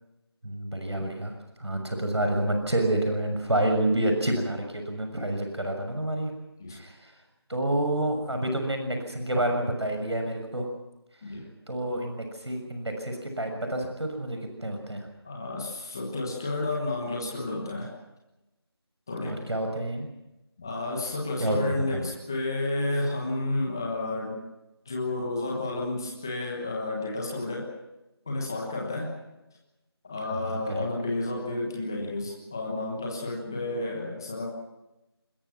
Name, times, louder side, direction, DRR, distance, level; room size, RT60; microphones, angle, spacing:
voice 1, 0.4-1.3 1.6-6.3 6.7-7.1 7.5-10.7 11.7-15.1 19.2-20.1 21.4-22.1 30.5-30.8, right 1 dB, 90° right, 4 dB, 6.5 m, -28 dB
voice 2, 15.2-17.9 19.1-19.5 20.6-24.4 24.8-27.7 28.3-29.2 30.0-34.5, left 2 dB, 10° left, -1 dB, 1.3 m, -31 dB
24.5 x 21.5 x 6.0 m, 0.96 s
figure-of-eight pair, 175°, 14 cm